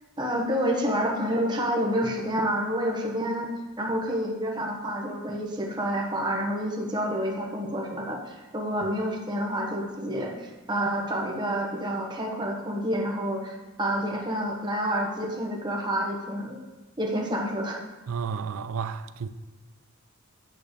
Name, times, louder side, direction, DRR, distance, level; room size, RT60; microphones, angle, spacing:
voice 1, 0.2-3.5 3.8-16.6 17.0-17.8, equal, 20° right, 1.0 m, -28 dB
voice 2, 18.1-19.3, right 6 dB, 75° right, 0.4 m, -32 dB
8.6 x 3.3 x 6.6 m
head